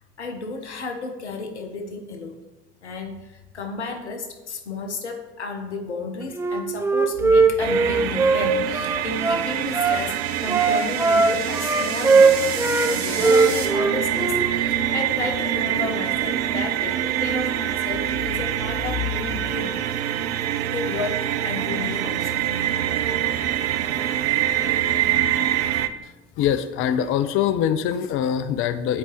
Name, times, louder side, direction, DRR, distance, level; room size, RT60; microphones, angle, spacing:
voice 1, 0.2-2.4 2.8-12.6 12.9-19.7 20.7-22.4, left 3 dB, 85° left, 5 dB, 0.7 m, -32 dB
Wind instrument woodwind instrument, 6.3-10.0 10.5-12.9 13.2-14.5, right 4 dB, 5° right, 0.5 m, -19 dB
sound 1, 7.6-25.9, right 11 dB, 70° right, 0.5 m, -25 dB
sound 2, 8.5-13.7, right 4 dB, 45° right, 1.3 m, -36 dB
voice 2, 26.4-29.0, left 9 dB, 40° left, 11 dB, 0.4 m, -23 dB
9.2 x 4.5 x 2.9 m, 1.1 s
figure-of-eight pair, 55°, 33 cm